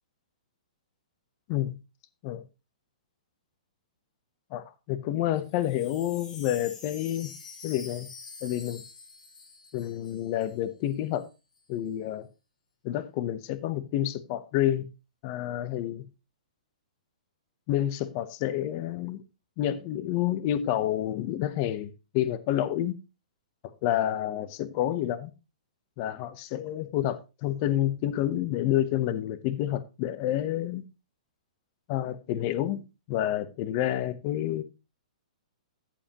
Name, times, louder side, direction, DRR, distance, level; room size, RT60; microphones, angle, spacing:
voice 1, 4.5-7.3 7.6-8.1 8.4-8.8 9.7-11.3 11.7-12.3 12.8-14.9 15.2-16.1 17.7-19.2 19.6-23.0 23.8-25.3 26.0-30.8 31.9-34.6, left 12 dB, 25° left, 0.7 m, -29 dB
Wind chime, 5.4-10.6 10.8-10.9 11.2-11.6, left 5 dB, 80° left, 6.6 m, -46 dB
14.0 x 7.6 x 2.9 m
hypercardioid pair, 180°, 4 cm